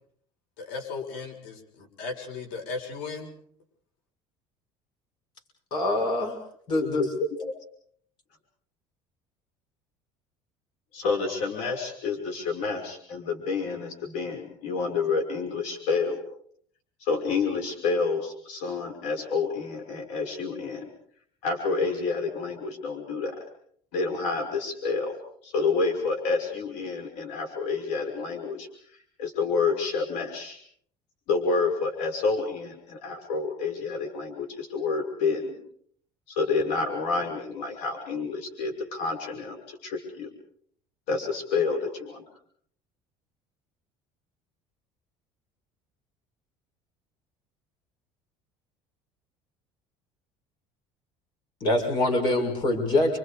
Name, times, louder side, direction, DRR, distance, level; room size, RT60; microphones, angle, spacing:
voice 1, 0.6-3.3, left 4 dB, 90° left, 3 dB, 6.9 m, -36 dB
voice 2, 5.7-6.3 6.7-7.0 51.6-53.2, left 2 dB, 40° left, 4 dB, 6.3 m, -24 dB
voice 3, 10.9-16.2 17.0-20.8 21.4-23.4 23.9-25.2 25.4-30.6 31.3-35.5 36.3-40.3 41.1-42.2, left 4 dB, 70° left, 3 dB, 5.8 m, -29 dB
30.0 x 26.5 x 5.1 m, 0.63 s
cardioid pair, 165°, 12 cm